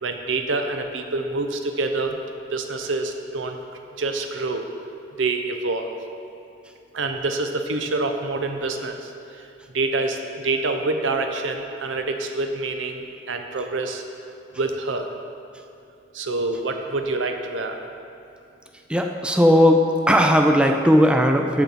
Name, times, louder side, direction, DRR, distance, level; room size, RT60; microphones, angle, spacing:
voice 1, 0.0-2.2 2.5-3.6 4.0-4.7 5.2-6.0 6.9-9.5 9.7-14.0 14.5-15.1 16.1-17.8, right 3 dB, 85° right, 5 dB, 0.7 m, -26 dB
voice 2, 18.9-21.6, equal, 5° right, 4 dB, 0.3 m, -17 dB
13.5 x 4.5 x 4.0 m, 2.6 s
head